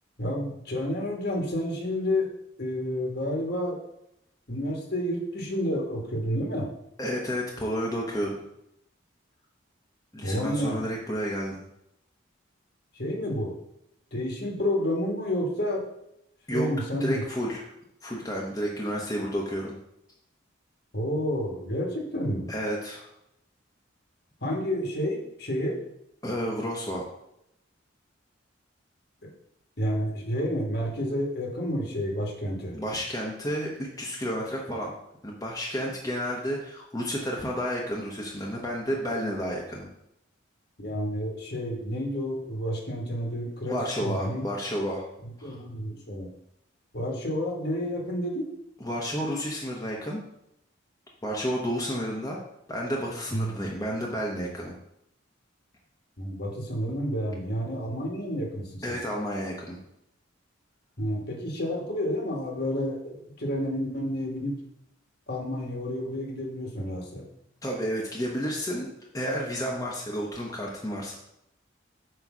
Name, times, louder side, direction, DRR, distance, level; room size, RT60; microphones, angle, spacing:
voice 1, 0.2-2.3 2.6-3.8 4.5-6.7 10.2-10.8 12.9-13.5 14.1-15.9 16.5-17.2 20.9-22.5 24.4-25.8 29.2-29.3 29.8-32.8 40.8-44.4 45.4-46.3 46.9-48.5 53.3-53.5 56.2-59.0 61.0-64.6 65.3-67.2, equal, 55° left, 0 dB, 1.6 m, -30 dB
voice 2, 7.0-8.4 10.1-11.6 16.5-16.7 17.0-17.7 18.0-19.8 22.5-23.1 26.2-27.1 32.7-33.7 34.0-34.9 35.2-39.9 43.6-45.0 45.4-45.6 48.8-50.2 51.2-52.4 52.7-54.7 58.8-59.8 67.6-68.9 69.1-71.2, equal, 15° left, -3 dB, 1.0 m, -31 dB
8.0 x 3.2 x 6.1 m, 0.80 s
head